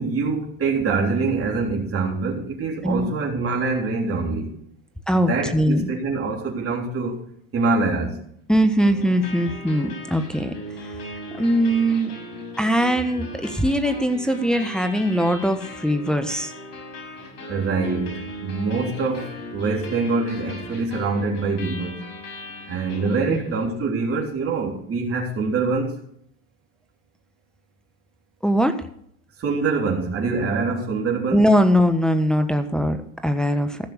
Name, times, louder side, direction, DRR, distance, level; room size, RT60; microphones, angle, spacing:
voice 1, 0.0-4.5 5.1-7.2 7.5-8.2 17.5-22.0 22.7-26.0 29.4-31.5, right 4 dB, 30° right, -1 dB, 3.7 m, -24 dB
voice 2, 5.1-5.9 8.5-10.5 11.3-12.1 12.6-16.5 23.3-23.4 28.4-28.8 31.3-33.8, equal, ahead, 7 dB, 1.2 m, -21 dB
sound 1, 8.8-23.8, left 1 dB, 50° left, 6.5 m, -38 dB
15.0 x 6.7 x 7.0 m, 0.66 s
hypercardioid pair, 95°, 42 cm